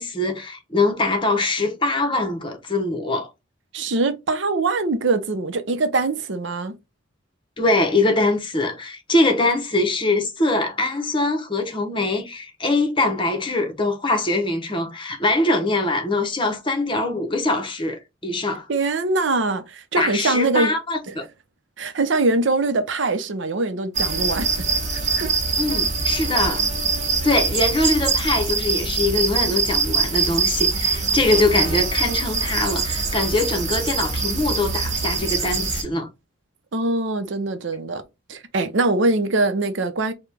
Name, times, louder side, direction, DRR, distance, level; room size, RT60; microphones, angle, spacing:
voice 1, 0.0-3.3 7.6-18.7 20.0-21.2 25.6-26.6 27.2-36.1, left 2 dB, 25° left, 0.8 m, -23 dB
voice 2, 3.7-6.8 18.7-20.7 21.1-21.2 21.8-24.6 24.9-25.3 36.7-38.0 38.3-40.1, right 3 dB, 70° right, 0.6 m, -23 dB
sound 1, 24.0-35.8, right 4 dB, 35° right, 1.0 m, -23 dB
5.0 x 2.2 x 3.4 m
head